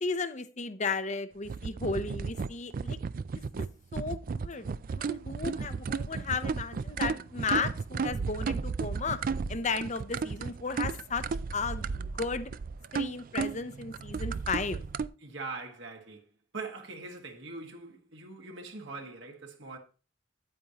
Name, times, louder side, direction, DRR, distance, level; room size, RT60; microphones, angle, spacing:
voice 1, 0.0-3.0 3.6-3.7 3.9-4.7 4.9-9.2 9.5-11.2 11.5-12.5 12.9-14.8, left 4 dB, 35° left, 0.7 m, -34 dB
sound 1, 1.4-15.1, right 5 dB, 45° right, 0.4 m, -34 dB
voice 2, 15.2-16.3 16.5-19.8, right 3 dB, 70° right, 1.9 m, -42 dB
9.4 x 8.7 x 2.9 m
head